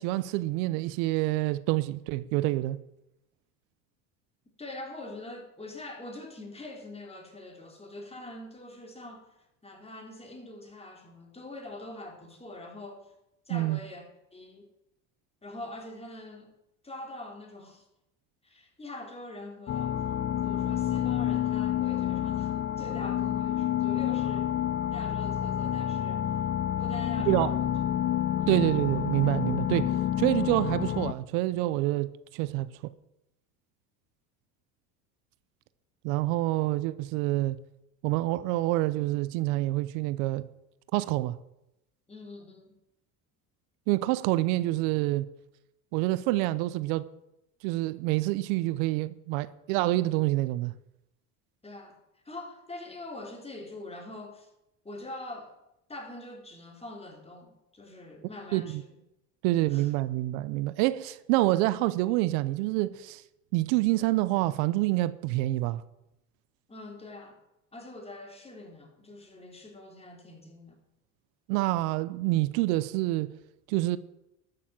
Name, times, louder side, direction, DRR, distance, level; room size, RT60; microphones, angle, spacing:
voice 1, 0.0-2.8 13.5-13.8 27.3-27.5 28.5-32.7 36.0-37.6 38.0-40.5 40.9-41.4 43.9-45.3 45.9-47.0 47.6-50.7 58.5-58.8 59.4-63.2 63.5-65.8 71.5-73.3 73.7-74.0, right 18 dB, 80° right, 0.7 m, -27 dB
voice 2, 4.6-13.1 13.5-14.7 15.4-16.5 16.8-17.9 18.4-20.2 20.4-24.5 24.9-26.4 26.8-27.7 28.1-28.6 42.1-42.8 51.6-52.0 52.3-54.5 54.8-55.6 55.9-59.0 59.7-59.9 66.7-67.4 67.7-70.8, left 2 dB, 15° left, 3.5 m, -44 dB
sound 1, 19.7-31.1, left 11 dB, 30° left, 0.5 m, -29 dB
12.5 x 6.9 x 7.5 m
supercardioid pair, 95°, 41 cm